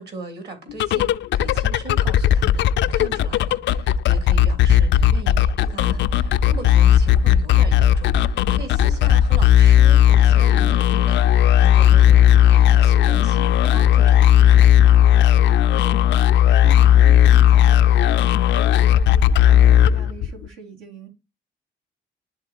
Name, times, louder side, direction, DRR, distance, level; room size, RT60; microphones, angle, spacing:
voice 1, 0.0-14.7, right 3 dB, 55° right, 3.2 m, -39 dB
sound 1, 0.7-20.4, left 10 dB, 65° left, 0.4 m, -15 dB
voice 2, 15.3-21.1, right 5 dB, 85° right, 3.0 m, -41 dB
11.5 x 3.8 x 2.9 m
cardioid pair, 90°, 20 cm